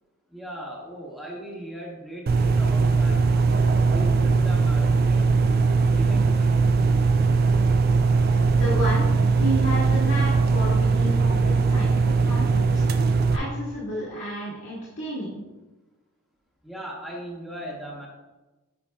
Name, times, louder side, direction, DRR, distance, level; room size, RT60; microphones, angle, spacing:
voice 1, 0.3-3.6 3.9-5.4 5.8-6.6 16.6-18.1, right 1 dB, ahead, -4 dB, 0.9 m, -38 dB
sound 1, 2.3-13.4, right 4 dB, 45° right, 0.3 m, -20 dB
voice 2, 7.8-9.1 9.4-15.4, right 1 dB, 70° left, -8 dB, 1.7 m, -32 dB
8.2 x 5.4 x 2.3 m, 1.1 s
head